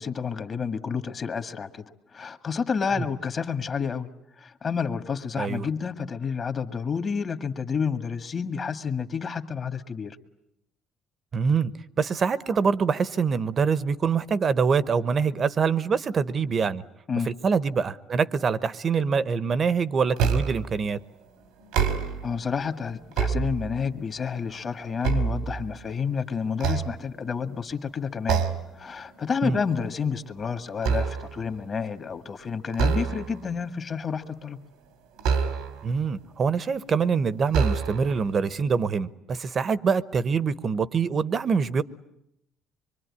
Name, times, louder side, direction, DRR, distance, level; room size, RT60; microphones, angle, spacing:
voice 1, 0.0-4.1 4.4-10.2 17.1-17.3 22.2-28.5 28.8-34.6, left 6 dB, 40° left, 1.8 m, -30 dB
voice 2, 5.4-5.7 11.3-11.7 12.0-16.8 17.3-21.0 29.4-29.6 35.8-41.8, right 5 dB, 40° right, 1.0 m, -25 dB
sound 1, 20.2-20.7 21.6-22.4 22.9-24.0 24.5-26.0 26.5-27.5 28.3-28.8 29.1-29.4 29.8-31.5 32.7-33.5 35.2-36.0 36.7-36.8 37.5-38.2, right 6 dB, 90° right, 2.5 m, -27 dB
25.0 x 24.0 x 9.8 m
cardioid pair, 105°, 0 cm